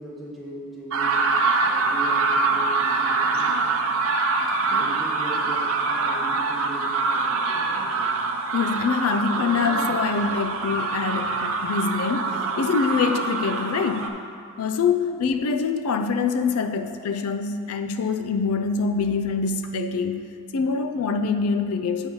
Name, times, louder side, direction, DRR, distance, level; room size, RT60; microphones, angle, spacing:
voice 1, 0.0-1.3 1.6-3.8 4.8-5.7 6.0-8.2 15.0-15.2, right 1 dB, ahead, -5 dB, 1.0 m, -39 dB
sound 1, 0.9-14.1, right 3 dB, 70° right, 0.6 m, -24 dB
voice 2, 8.5-14.2 14.6-22.1, left 5 dB, 80° left, 8 dB, 0.4 m, -25 dB
7.2 x 5.3 x 5.2 m, 2.4 s
head